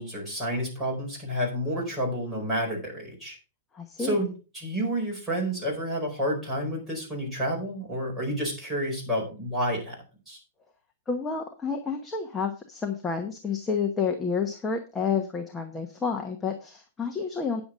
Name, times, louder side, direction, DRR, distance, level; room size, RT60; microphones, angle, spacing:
voice 1, 0.0-3.4 4.0-4.3 4.5-10.0 10.3-10.4, equal, 5° right, -4 dB, 4.5 m, -29 dB
voice 2, 3.7-4.2 11.1-17.6, left 5 dB, 10° left, 3 dB, 0.9 m, -30 dB
9.5 x 7.0 x 5.0 m, 0.34 s
supercardioid pair, 170°, 0 cm